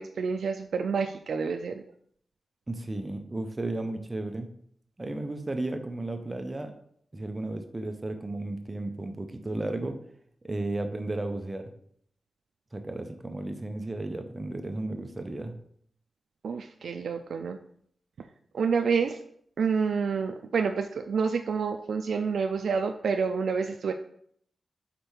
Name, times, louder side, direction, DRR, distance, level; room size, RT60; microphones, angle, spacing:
voice 1, 0.0-1.8 16.4-17.6 18.5-19.2 19.6-23.9, right 5 dB, 85° right, 5 dB, 0.3 m, -28 dB
voice 2, 2.7-4.5 5.0-6.7 7.1-10.0 10.4-11.7 12.7-15.6, right 2 dB, 20° right, 6 dB, 0.6 m, -34 dB
5.1 x 4.5 x 4.4 m, 0.66 s
wide cardioid pair, 115°, 0 cm